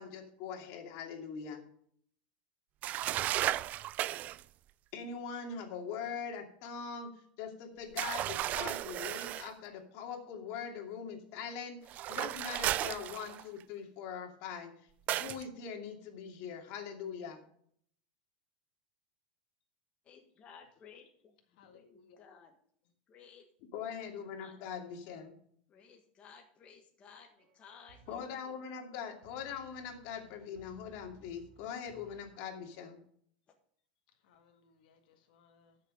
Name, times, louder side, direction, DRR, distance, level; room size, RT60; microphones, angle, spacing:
voice 1, 0.0-1.6 4.9-14.7 15.1-17.4 23.7-25.4 28.1-33.0, left 6 dB, 50° left, 3 dB, 2.5 m, -42 dB
sound 1, 2.8-4.4 8.0-9.5 11.9-13.6 15.1-15.4, right 13 dB, 35° right, 0.3 m, -34 dB
voice 2, 20.0-22.6 23.1-23.5 24.3-24.5 25.7-28.6, left 6 dB, 25° left, 2 dB, 1.5 m, -57 dB
voice 3, 21.5-22.2 34.1-35.8, left 5 dB, 70° left, 4 dB, 1.7 m, -64 dB
sound 2, 27.3-32.9, right 3 dB, 90° right, 2.7 m, -62 dB
12.5 x 6.7 x 5.2 m, 0.63 s
supercardioid pair, 150°, 5 cm